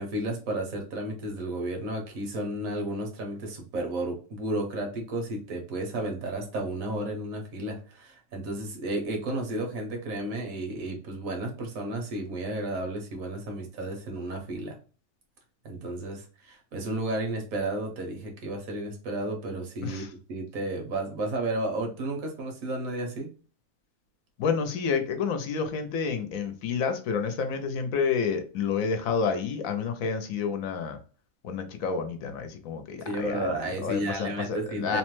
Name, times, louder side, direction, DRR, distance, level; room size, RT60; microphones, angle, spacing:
voice 1, 0.0-14.8 15.6-20.0 20.3-23.3 33.0-35.0, right 1 dB, 75° right, 2 dB, 1.3 m, -32 dB
voice 2, 24.4-31.0 31.4-35.0, left 6 dB, 75° left, 7 dB, 1.0 m, -29 dB
3.0 x 2.1 x 3.0 m, 0.38 s
omnidirectional pair, 1.5 m